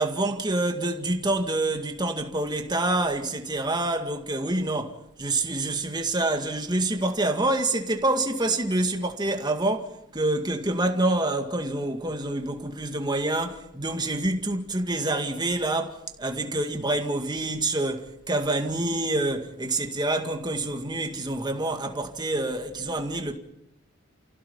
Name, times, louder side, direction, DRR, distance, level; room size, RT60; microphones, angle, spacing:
voice 1, 0.0-23.3, right 2 dB, 20° right, 2.0 m, -27 dB
30.0 x 16.0 x 5.6 m
head